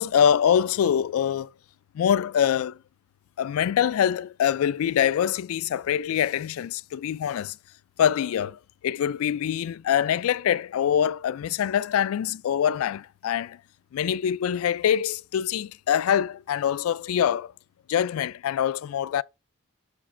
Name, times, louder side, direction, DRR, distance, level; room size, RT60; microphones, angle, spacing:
voice 1, 0.0-1.5 1.9-2.8 3.4-7.6 8.0-13.6 13.9-17.5 17.9-19.2, left 9 dB, 85° left, 0.3 m, -24 dB
6.6 x 4.9 x 3.2 m
head